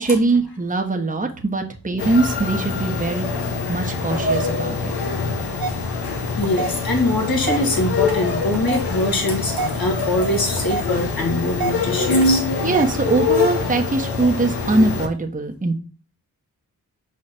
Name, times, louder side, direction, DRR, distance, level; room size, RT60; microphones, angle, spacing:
voice 1, 0.0-3.2 3.7-4.9 12.6-15.8, right 3 dB, 20° right, 3 dB, 1.1 m, -21 dB
sound 1, 2.0-15.1, left 3 dB, 80° left, 1.3 m, -24 dB
sound 2, 5.6-13.8, right 4 dB, 65° right, 1.1 m, -33 dB
voice 2, 6.4-12.5, left 2 dB, 60° left, 1 dB, 2.5 m, -23 dB
5.6 x 4.9 x 4.4 m, 0.36 s
cardioid pair, 55°, 40 cm